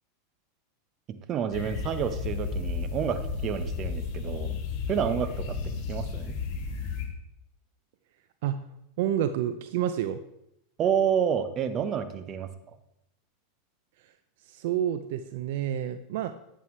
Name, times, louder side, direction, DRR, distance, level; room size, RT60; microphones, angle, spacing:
voice 1, 1.3-4.5 4.9-5.6 5.9-6.4 10.8-12.5, right 8 dB, 40° right, 9 dB, 1.0 m, -29 dB
sound 1, 1.5-7.0, left 5 dB, 50° left, 2.4 m, -33 dB
voice 2, 9.0-10.2 14.5-16.3, right 10 dB, 70° right, 11 dB, 0.5 m, -29 dB
11.0 x 8.3 x 3.2 m, 0.79 s
hypercardioid pair, 110°, 0 cm